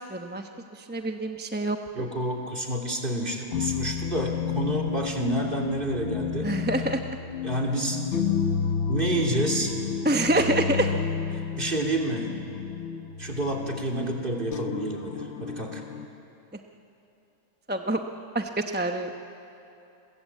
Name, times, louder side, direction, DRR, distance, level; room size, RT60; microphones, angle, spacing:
voice 1, 0.1-0.4 0.7-2.1 6.4-7.0 10.0-10.9 17.7-18.0 18.3-19.1, right 1 dB, 10° right, 5 dB, 0.8 m, -26 dB
voice 2, 1.9-6.5 7.4-8.0 8.9-9.7 11.6-12.3 13.2-15.8, right 1 dB, 40° right, 0 dB, 3.2 m, -29 dB
sound 1, 3.5-16.1, left 7 dB, 55° left, 1.2 m, -31 dB
30.0 x 22.5 x 8.5 m, 2.8 s
omnidirectional pair, 1.5 m